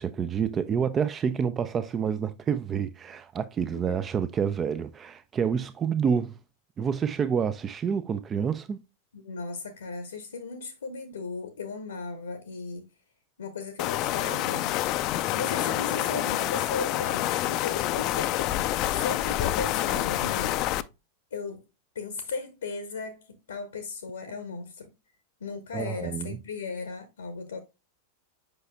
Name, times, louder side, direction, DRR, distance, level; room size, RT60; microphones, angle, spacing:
voice 1, 0.0-6.4 6.8-8.8 25.7-26.4, right 7 dB, 25° right, 0.4 m, -28 dB
voice 2, 9.1-12.9 13.4-14.7 15.3-20.5 21.3-21.6 21.9-24.9 25.4-27.6, left 4 dB, 70° left, 0.8 m, -36 dB
sound 1, 13.8-20.8, left 15 dB, 40° left, 0.4 m, -27 dB
7.9 x 5.7 x 2.2 m
figure-of-eight pair, 90°, 0 cm